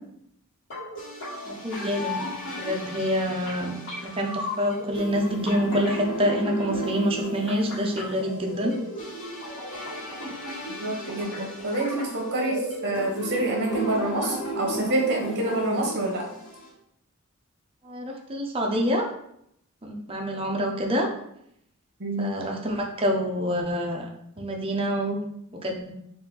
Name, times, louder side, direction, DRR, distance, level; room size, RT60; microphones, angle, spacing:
sound 1, 0.7-16.7, equal, 60° left, 1.4 m, -34 dB
voice 1, 1.5-2.2 2.5-3.7 4.0-8.7 17.8-19.1 19.8-21.1 22.2-24.1 24.4-25.2 25.5-25.9, equal, 25° right, 1 dB, 0.6 m, -27 dB
voice 2, 10.7-16.3 22.0-22.3, right 2 dB, 50° right, -1 dB, 1.2 m, -27 dB
4.2 x 2.6 x 3.8 m, 0.74 s
head